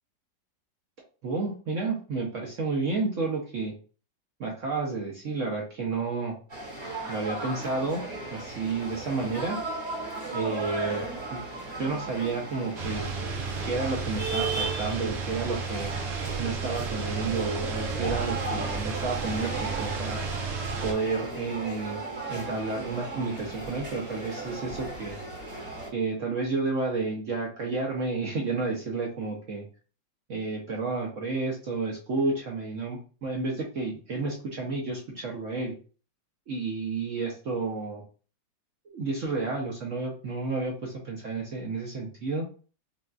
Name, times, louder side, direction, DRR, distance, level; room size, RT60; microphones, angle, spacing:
voice 1, 1.2-3.7 4.4-6.4 7.1-9.6 10.3-11.4 11.8-13.2 13.7-15.9 16.4-20.2 20.8-25.2 25.9-29.7 30.3-35.7 36.5-38.0 38.9-42.5, right 3 dB, 60° right, -1 dB, 0.8 m, -31 dB
sound 1, 6.5-25.9, right 3 dB, 35° right, 1.4 m, -36 dB
sound 2, 12.8-20.9, right 4 dB, 85° right, 1.5 m, -33 dB
3.9 x 2.3 x 2.3 m, 0.37 s
omnidirectional pair, 1.9 m